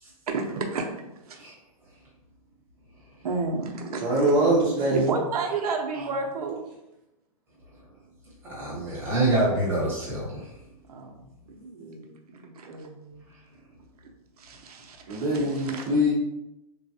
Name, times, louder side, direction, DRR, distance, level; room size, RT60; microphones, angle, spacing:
voice 1, 0.3-0.9 1.3-1.5 3.2-4.3 4.9-6.7 10.9-11.2 11.5-13.2 14.4-15.8, right 4 dB, 85° right, 2 dB, 0.7 m, -32 dB
voice 2, 4.0-5.2 15.1-16.1, equal, 35° right, -6 dB, 0.6 m, -23 dB
voice 3, 8.5-10.5, right 2 dB, 10° right, -7 dB, 0.9 m, -26 dB
3.3 x 2.2 x 2.7 m, 0.90 s
hypercardioid pair, 170°, 19 cm